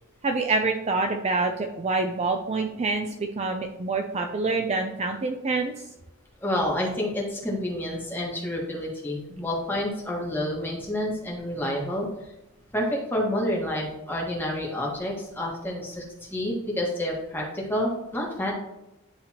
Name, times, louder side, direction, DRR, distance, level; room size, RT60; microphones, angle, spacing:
voice 1, 0.2-5.7, right 3 dB, 30° right, 4 dB, 0.4 m, -26 dB
voice 2, 6.4-12.1 12.7-18.5, left 1 dB, 10° left, -3 dB, 1.5 m, -29 dB
10.5 x 3.4 x 2.9 m, 0.97 s
head